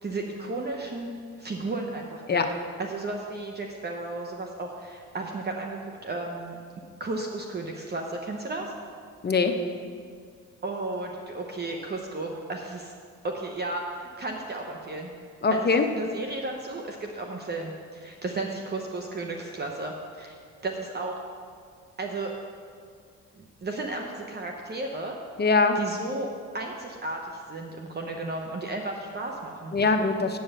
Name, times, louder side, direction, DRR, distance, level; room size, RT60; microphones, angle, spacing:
voice 1, 0.0-1.1 1.4-2.4 2.8-6.6 7.0-8.7 10.6-12.9 13.2-15.1 15.5-15.6 16.0-21.2 22.0-22.3 23.4-25.1 25.8-26.3 26.5-29.8, right 2 dB, 35° right, 1 dB, 1.0 m, -34 dB
voice 2, 15.4-15.8 25.4-25.8 29.7-30.4, left 4 dB, 35° left, 5 dB, 0.9 m, -22 dB
8.6 x 8.0 x 6.6 m, 2.1 s
cardioid pair, 90°, 30 cm